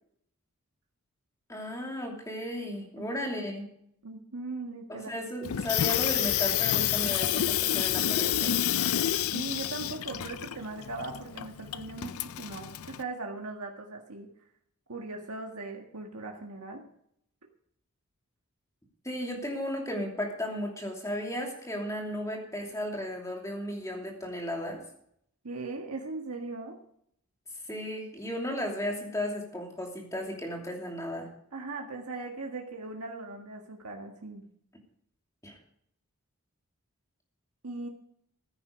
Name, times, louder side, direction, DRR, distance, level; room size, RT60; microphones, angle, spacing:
voice 1, 1.5-3.7 4.9-8.5 19.0-24.8 27.7-31.3 35.4-35.6, left 1 dB, 15° left, 1 dB, 2.8 m, -35 dB
voice 2, 4.0-5.1 9.3-14.3 14.9-16.8 25.4-26.8 31.5-34.5 37.6-37.9, right 3 dB, 90° right, 1 dB, 1.7 m, -39 dB
Water tap faucet / Sink (filling or washing), 5.4-13.0, left 11 dB, 75° left, 0.5 m, -29 dB
15.0 x 9.7 x 5.1 m, 0.70 s
head